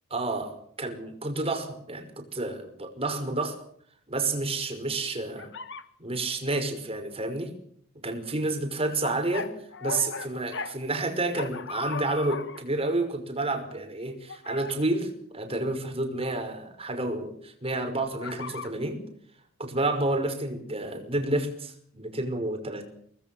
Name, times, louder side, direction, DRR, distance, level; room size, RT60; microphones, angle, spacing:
voice 1, 0.1-3.6 4.1-5.5 6.0-7.5 8.0-9.5 9.8-19.0 19.6-22.9, right 2 dB, 30° right, 6 dB, 5.5 m, -30 dB
sound 1, 5.4-5.9 9.0-10.8 11.4-12.6 14.3-14.8 18.2-18.7, left 5 dB, 60° left, 1.6 m, -37 dB
25.5 x 20.0 x 7.2 m, 0.65 s
head